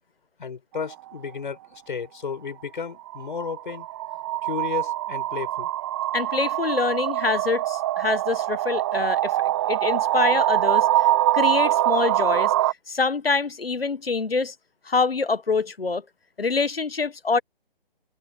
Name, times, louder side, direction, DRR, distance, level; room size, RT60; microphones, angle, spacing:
voice 1, 0.4-3.9 4.4-5.7, left 6 dB, 55° left, 5.9 m, -33 dB
sound 1, 0.8-0.9 3.0-12.7, right 14 dB, 25° right, 1.1 m, -24 dB
voice 2, 6.1-10.9 11.3-12.5 12.9-14.5 14.8-16.0 16.4-17.4, left 4 dB, 75° left, 1.4 m, -25 dB
open air
figure-of-eight pair, 140°, 29 cm